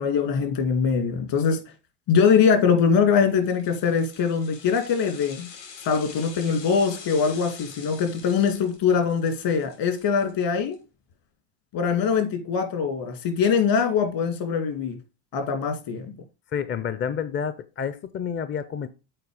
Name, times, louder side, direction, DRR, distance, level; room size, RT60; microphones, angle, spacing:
voice 1, 0.0-1.6 2.1-5.5 5.8-10.8 11.7-15.0 15.3-16.1, left 6 dB, 60° left, 2.4 m, -22 dB
sound 1, 3.4-10.7 11.1-11.2, left 6 dB, 75° left, 3.8 m, -45 dB
voice 2, 16.5-18.9, left 7 dB, 25° left, 0.5 m, -29 dB
7.8 x 4.6 x 4.8 m
supercardioid pair, 90°, 48 cm